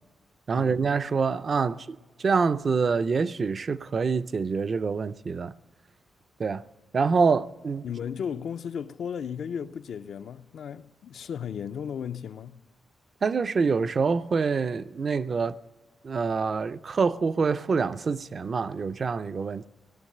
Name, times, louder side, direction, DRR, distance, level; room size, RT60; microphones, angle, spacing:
voice 1, 0.5-1.9 2.2-5.5 6.4-6.6 6.9-7.8 13.2-15.6 16.0-19.7, right 5 dB, 40° right, 0.4 m, -26 dB
voice 2, 7.8-12.6, left 7 dB, 75° left, 0.5 m, -35 dB
18.0 x 12.5 x 6.6 m
wide cardioid pair, 145°, 0 cm